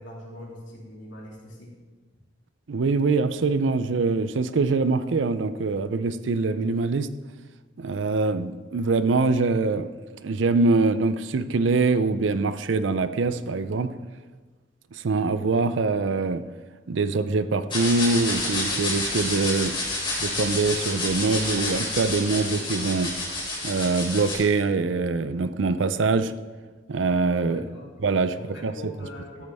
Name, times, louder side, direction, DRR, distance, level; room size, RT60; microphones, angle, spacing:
voice 1, 0.0-1.7 27.5-27.9 28.3-29.4, left 1 dB, 75° left, -3 dB, 3.0 m, -42 dB
voice 2, 2.7-7.1 7.8-9.9 10.2-13.9 14.9-16.4 16.9-19.8 20.2-23.1 23.6-26.3 26.9-27.6 28.0-28.7, right 3 dB, 75° right, 12 dB, 0.5 m, -24 dB
sound 1, 17.7-24.3, left 2 dB, 25° left, 3.8 m, -29 dB
13.5 x 8.4 x 3.5 m, 1.3 s
head